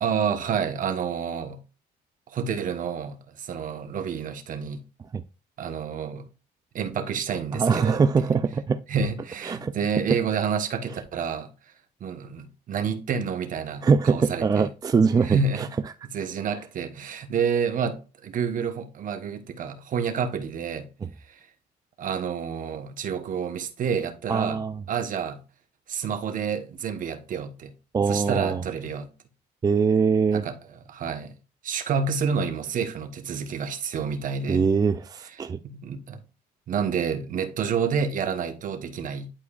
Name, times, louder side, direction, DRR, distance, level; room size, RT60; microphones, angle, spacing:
voice 1, 0.0-1.6 2.3-4.8 5.6-6.3 6.7-8.3 8.9-11.5 12.0-14.7 15.2-15.7 16.1-18.0 18.2-20.8 21.3-21.4 22.0-24.6 24.9-25.4 25.9-27.7 28.1-29.1 30.3-30.5 30.9-31.3 31.6-34.6 35.6-36.2 36.7-39.3, right 6 dB, 50° right, 1.2 m, -29 dB
voice 2, 7.5-8.8 9.4-9.7 13.8-15.9 16.5-16.6 21.0-21.1 24.3-24.8 27.9-28.6 29.6-30.4 34.5-35.6, right 5 dB, 20° right, 0.4 m, -23 dB
11.5 x 4.7 x 2.4 m
cardioid pair, 110°, 17 cm